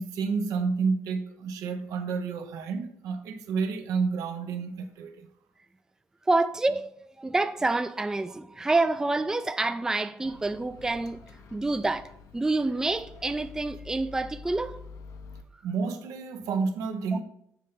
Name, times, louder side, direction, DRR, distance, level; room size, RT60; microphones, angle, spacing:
voice 1, 0.0-5.3 15.6-17.2, right 5 dB, 85° right, 0.7 m, -30 dB
voice 2, 6.3-6.9 7.2-11.2 11.5-12.1 12.3-14.8, right 2 dB, 10° right, 0.3 m, -27 dB
Microwave oven, 10.2-15.4, left 5 dB, 65° left, 0.7 m, -47 dB
7.2 x 3.3 x 5.5 m
cardioid pair, 90°, 6 cm